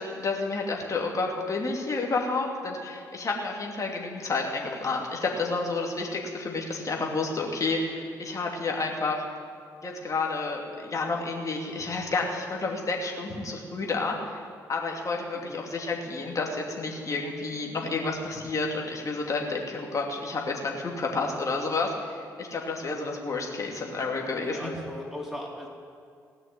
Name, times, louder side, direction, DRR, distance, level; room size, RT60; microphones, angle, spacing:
voice 1, 0.0-9.2 9.8-14.4 14.7-24.7, left 3 dB, 40° left, 0 dB, 2.7 m, -30 dB
voice 2, 24.4-25.7, left 1 dB, 5° right, -4 dB, 4.5 m, -38 dB
18.5 x 6.3 x 9.5 m, 2.2 s
hypercardioid pair, 45°, 9 cm